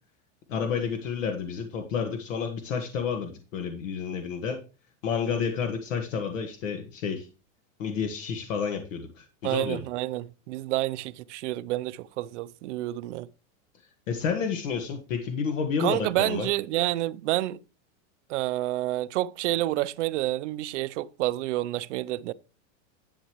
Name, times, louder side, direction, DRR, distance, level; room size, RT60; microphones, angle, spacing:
voice 1, 0.5-4.6 5.0-7.3 7.8-9.8 14.1-16.5, left 6 dB, 75° left, 1.7 m, -30 dB
voice 2, 9.4-13.3 15.8-17.6 18.3-22.3, right 16 dB, 65° right, 0.6 m, -29 dB
11.5 x 8.2 x 3.0 m
supercardioid pair, 160°, 39 cm